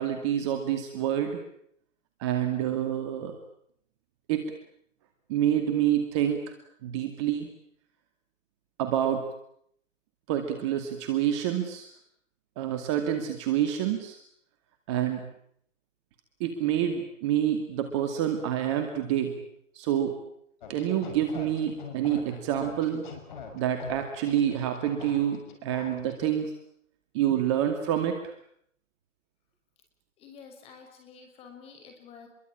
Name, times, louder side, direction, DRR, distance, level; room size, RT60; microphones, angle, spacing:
voice 1, 0.0-1.4 2.2-3.4 4.3-4.5 5.3-6.5 6.8-7.5 8.8-9.2 10.3-11.9 12.6-14.2 14.9-15.2 16.4-19.4 19.7-20.1 20.7-23.0 23.5-26.5 27.1-28.2, right 10 dB, 25° right, 6 dB, 2.4 m, -27 dB
sound 1, 20.6-26.3, left 5 dB, 40° left, 6.3 m, -44 dB
voice 2, 30.2-32.3, left 6 dB, 15° left, 4 dB, 5.8 m, -49 dB
27.0 x 23.0 x 8.8 m, 0.70 s
hypercardioid pair, 150°, 38 cm